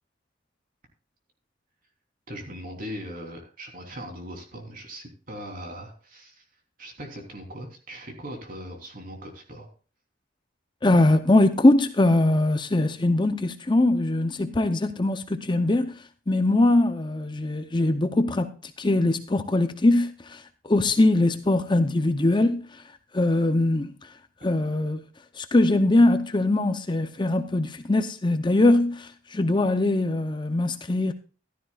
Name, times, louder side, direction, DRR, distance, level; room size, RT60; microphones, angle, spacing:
voice 1, 2.3-6.4 6.8-9.7, equal, 45° right, 3.4 m, -39 dB
voice 2, 10.8-24.2 24.4-25.0 25.3-31.1, left 2 dB, 25° left, 0.6 m, -22 dB
15.0 x 12.5 x 2.4 m
head